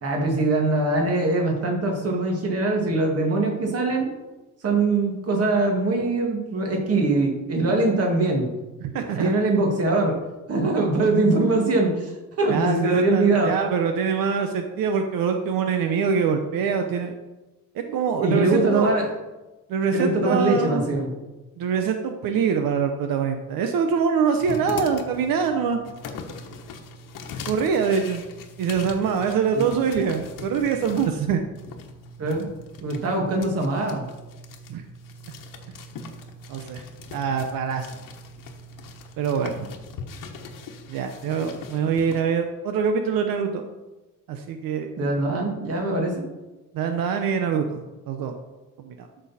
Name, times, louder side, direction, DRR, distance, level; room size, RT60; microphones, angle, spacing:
voice 1, 0.0-4.1 4.6-8.5 9.1-10.1 10.5-12.1 12.4-13.5 17.8-19.1 19.9-21.1 29.5-29.7 32.2-32.5 32.8-34.0 45.0-46.3, right 2 dB, 45° right, 1 dB, 2.2 m, -22 dB
voice 2, 8.8-9.3 12.5-17.1 17.7-18.9 19.7-20.8 21.6-25.8 27.5-28.2 28.6-31.4 34.7-34.8 36.5-36.8 37.1-38.0 39.2-39.7 40.9-43.6 44.3-44.9 46.7-47.8 48.1-48.3 48.8-49.1, right 6 dB, 85° right, 6 dB, 0.9 m, -24 dB
sound 1, 24.4-42.2, left 3 dB, 75° left, 1.3 m, -40 dB
13.0 x 6.3 x 4.2 m, 1.1 s
cardioid pair, 165°, 33 cm